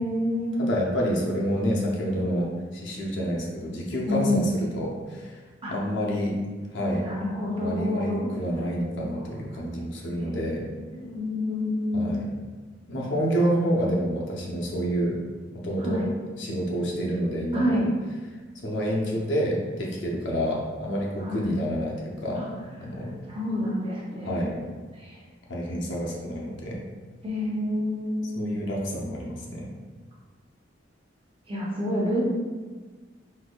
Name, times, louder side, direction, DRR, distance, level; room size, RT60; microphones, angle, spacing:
voice 1, 0.0-0.6 4.0-4.6 5.6-5.7 7.0-8.3 10.1-10.4 11.0-12.2 15.8-16.1 17.5-17.9 21.2-21.5 23.3-24.6 27.2-28.5 31.5-32.2, left 1 dB, 30° right, -5 dB, 0.8 m, -28 dB
voice 2, 0.6-5.4 5.7-6.3 6.7-7.0 7.6-10.6 11.9-12.3 12.9-15.2 15.5-16.1 16.4-17.8 18.6-22.4 22.8-23.1 24.2-24.6 25.5-26.8 28.3-29.7, equal, 70° left, -2 dB, 0.7 m, -28 dB
4.1 x 2.7 x 2.3 m, 1.4 s
head